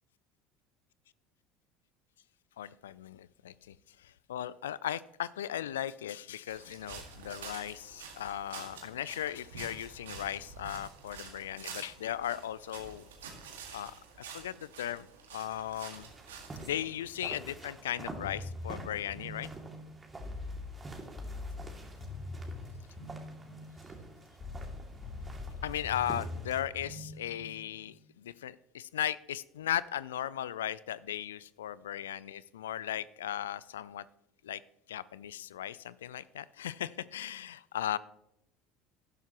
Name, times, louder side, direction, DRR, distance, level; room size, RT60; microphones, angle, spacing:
voice 1, 2.6-3.7 4.0-13.1 13.7-13.9 14.3-16.1 16.6-19.5 25.6-34.0 34.4-34.6 34.9-38.0, left 11 dB, 80° left, 20 dB, 0.3 m, -37 dB
sound 1, 6.5-16.8, right 6 dB, 80° right, 1.8 m, -48 dB
sound 2, 15.9-26.6, right 2 dB, 20° right, 2.4 m, -48 dB
sound 3, 18.2-28.0, left 2 dB, 35° left, 3.3 m, -43 dB
12.0 x 11.0 x 3.0 m, 0.82 s
hypercardioid pair, 70°, 0 cm